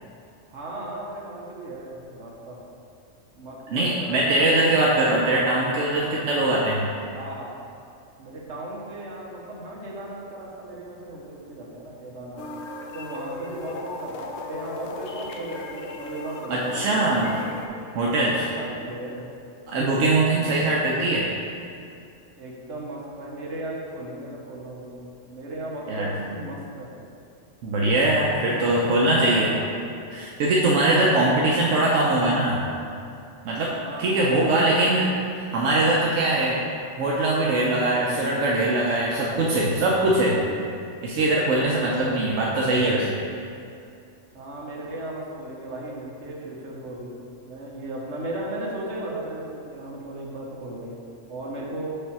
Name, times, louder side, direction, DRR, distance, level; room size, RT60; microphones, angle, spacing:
voice 1, 0.5-2.6 3.3-4.5 7.1-7.5 8.2-12.5 12.9-17.3 18.3-19.3 20.0-20.7 22.3-26.9 28.0-29.6 30.8-31.6 33.7-34.7 38.0-38.4 40.2-40.6 41.7-42.2 44.3-47.1 47.4-51.0 51.3-52.0, right 1 dB, 70° right, -3 dB, 1.4 m, -36 dB
voice 2, 3.7-6.9 16.5-17.3 17.9-18.5 19.7-21.3 25.9-26.1 27.6-29.5 30.1-32.6 33.4-36.6 37.0-40.4 41.0-43.2, right 2 dB, 85° right, -3 dB, 1.0 m, -22 dB
sound 1, 12.4-17.7, left 2 dB, 65° left, 0.9 m, -37 dB
5.2 x 4.3 x 5.8 m, 2.4 s
omnidirectional pair, 1.3 m